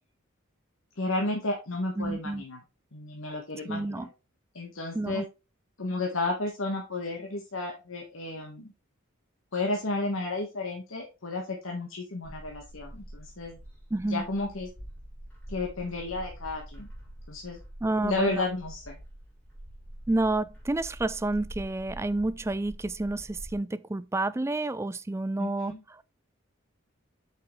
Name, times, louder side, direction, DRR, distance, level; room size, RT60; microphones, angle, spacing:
voice 1, 1.0-2.6 2.9-4.1 4.5-5.3 5.8-8.7 9.5-13.6 14.0-14.7 15.5-16.9 17.3-17.6 18.0-19.0 25.4-25.8, left 2 dB, 80° left, 1.5 m, -32 dB
voice 2, 2.0-2.4 3.7-4.1 4.9-5.3 13.9-14.3 17.8-18.4 20.1-26.0, right 2 dB, 15° right, 0.3 m, -30 dB
Bird, 12.2-23.5, right 1 dB, 5° left, 3.0 m, -45 dB
8.2 x 5.7 x 3.2 m
head